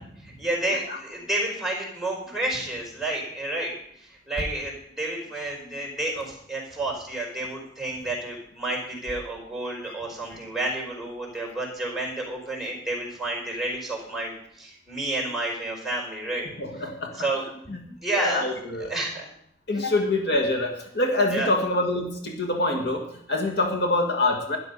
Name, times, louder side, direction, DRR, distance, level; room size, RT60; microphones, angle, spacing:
voice 1, 0.2-16.5 17.1-17.5 18.0-18.4 18.9-19.3 19.7-19.8 21.3-21.5, right 2 dB, ahead, -2 dB, 4.7 m, -30 dB
voice 2, 16.6-17.2 17.7-17.8 18.2-18.9 19.7-23.0 23.3-24.6, left 2 dB, 60° left, 2 dB, 1.8 m, -25 dB
13.0 x 11.0 x 5.5 m, 0.68 s
head